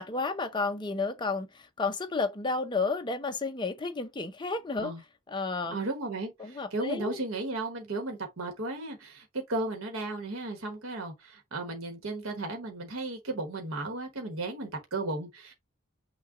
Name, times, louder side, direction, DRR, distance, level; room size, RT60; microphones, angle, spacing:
voice 1, 0.0-4.9 5.3-5.8 6.4-7.2, left 3 dB, 20° left, 0.6 m, -32 dB
voice 2, 5.7-15.5, right 2 dB, 75° right, 1.2 m, -35 dB
6.1 x 2.3 x 3.7 m
head